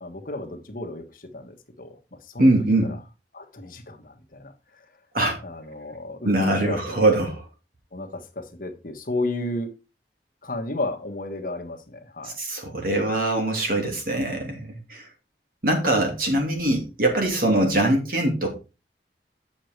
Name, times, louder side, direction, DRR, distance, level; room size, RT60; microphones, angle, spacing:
voice 1, 0.0-2.5 2.8-3.0 3.3-4.8 5.4-7.0 7.9-9.7 10.4-12.4, left 2 dB, 50° left, 4 dB, 1.4 m, -33 dB
voice 2, 2.4-2.9 5.1-5.4 6.2-7.4 12.2-15.1 15.6-18.5, right 1 dB, 50° right, 2 dB, 2.9 m, -22 dB
8.0 x 6.6 x 4.6 m, 0.29 s
head